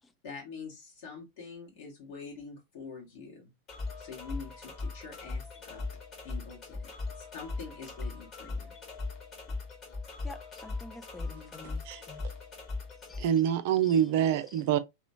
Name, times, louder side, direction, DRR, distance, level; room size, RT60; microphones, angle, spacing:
voice 1, 0.2-3.5 4.0-5.8 6.2-6.9 7.3-8.7 11.3-11.8, left 5 dB, 50° left, 1.3 m, -45 dB
sound 1, 3.7-13.3, left 3 dB, 30° left, 1.3 m, -39 dB
voice 2, 10.2-12.2 13.1-13.3 13.9-14.0 14.5-14.6, left 3 dB, 15° left, 0.5 m, -48 dB
voice 3, 11.6-12.0 13.2-14.8, right 9 dB, 50° right, 0.4 m, -26 dB
3.0 x 2.9 x 2.6 m
figure-of-eight pair, 90°, 0 cm